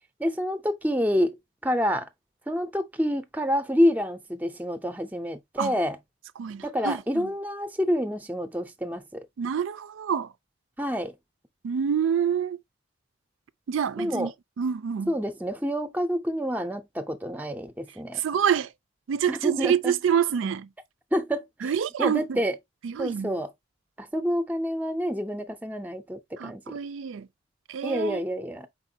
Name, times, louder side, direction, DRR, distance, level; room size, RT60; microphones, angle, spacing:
voice 1, 0.2-1.4 1.6-2.1 2.5-6.0 6.6-9.2 10.8-11.1 14.0-14.3 15.1-18.2 19.3-19.9 21.1-22.6 23.0-23.5 24.0-26.8 27.8-28.7, equal, 10° right, 0.5 m, -28 dB
voice 2, 6.4-7.3 9.4-10.3 11.6-12.6 13.7-14.3 14.6-15.1 18.1-18.7 19.1-20.7 21.6-22.2 22.8-23.3 26.4-27.3 27.7-28.2, right 8 dB, 80° right, 0.4 m, -27 dB
4.6 x 4.1 x 2.7 m
head